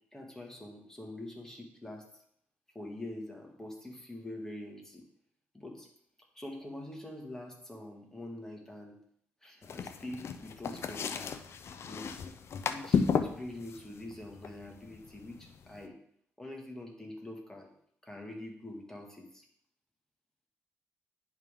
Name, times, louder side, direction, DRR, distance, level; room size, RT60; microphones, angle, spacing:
voice 1, 0.1-2.2 2.7-5.0 5.5-5.9 6.4-9.0 9.4-11.3 11.9-12.1 12.7-16.0 16.4-17.7 18.0-19.5, left 1 dB, 10° left, 0 dB, 1.9 m, -45 dB
sound 1, 9.6-15.8, left 6 dB, 60° left, 0.5 m, -34 dB
10.5 x 3.6 x 3.7 m, 0.68 s
cardioid pair, 70°, 5 cm